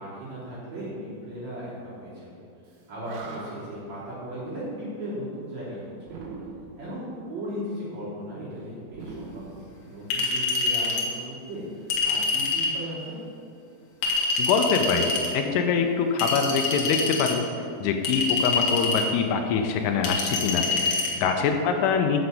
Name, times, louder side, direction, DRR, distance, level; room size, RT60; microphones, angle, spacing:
voice 1, 0.0-2.3 2.9-6.2 6.8-13.2 21.1-21.3, equal, 40° right, -10 dB, 3.8 m, -37 dB
Animal, 2.7-2.8 3.0-3.9 6.0-6.9 8.9-10.2, right 4 dB, 80° right, 3.7 m, -42 dB
Chink clink, 10.1-11.1 11.9-12.8 14.0-15.3 16.2-17.4 18.0-19.1 20.0-21.1, left 3 dB, 65° left, 2.3 m, -26 dB
voice 2, 14.4-17.4 17.8-22.2, left 5 dB, 80° left, 4 dB, 3.2 m, -24 dB
8.1 x 7.0 x 7.8 m, 2.4 s
omnidirectional pair, 5.7 m